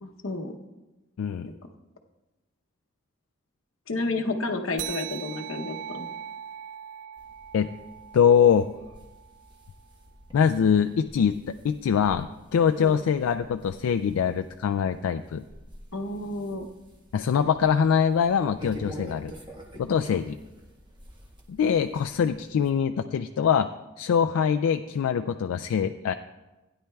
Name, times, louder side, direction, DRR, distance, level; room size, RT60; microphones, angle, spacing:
voice 1, 0.0-0.6 3.9-6.1 12.8-13.0 15.9-16.7 19.9-20.0, left 2 dB, 70° left, 4 dB, 0.8 m, -31 dB
voice 2, 1.2-1.5 7.5-7.7 8.1-8.7 10.3-12.3 12.5-15.4 17.1-19.3 19.8-20.4 21.5-23.7 24.0-26.1, left 7 dB, 90° left, 7 dB, 0.3 m, -23 dB
sound 1, 4.8-9.7, right 9 dB, 55° right, 0.4 m, -40 dB
sound 2, 7.2-22.7, equal, 20° right, 1.1 m, -48 dB
16.0 x 9.8 x 2.3 m, 1.1 s
head